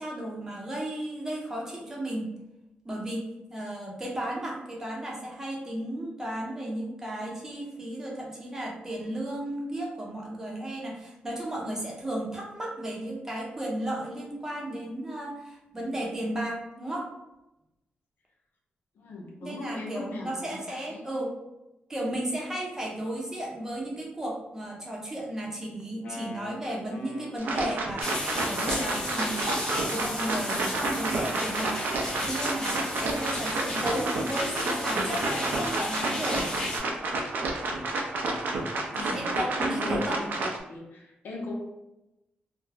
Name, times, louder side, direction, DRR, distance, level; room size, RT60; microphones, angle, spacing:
voice 1, 0.0-2.4 2.8-17.1 19.4-21.3 21.9-31.8 32.2-36.5 38.9-40.2, right 1 dB, 15° right, -2 dB, 0.6 m, -34 dB
voice 2, 18.9-21.0 38.9-41.5, left 3 dB, 85° left, -1 dB, 0.6 m, -39 dB
Wind instrument woodwind instrument, 25.8-30.5 31.0-35.7, left 1 dB, 40° left, 0.3 m, -45 dB
sound 1, 27.4-40.6, right 2 dB, 75° right, 0.4 m, -30 dB
sound 2, 28.0-36.8, left 1 dB, 20° left, 0.7 m, -34 dB
2.3 x 2.0 x 3.2 m, 0.93 s
wide cardioid pair, 135°, 3 cm